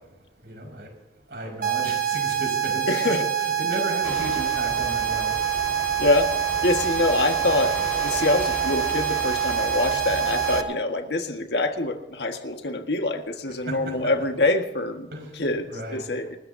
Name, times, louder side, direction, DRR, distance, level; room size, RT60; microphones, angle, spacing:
voice 1, 0.4-0.9 1.3-5.3 13.7-14.1 15.1-16.0, right 1 dB, 70° right, 1 dB, 5.5 m, -34 dB
sound 1, 1.6-10.6, right 9 dB, 55° right, 1.3 m, -25 dB
voice 2, 2.9-3.3 6.0-6.4 6.6-16.4, left 2 dB, 75° left, 5 dB, 1.7 m, -25 dB
sound 2, 4.0-10.6, equal, 10° left, 4.5 m, -36 dB
29.0 x 13.5 x 2.8 m, 1.1 s
head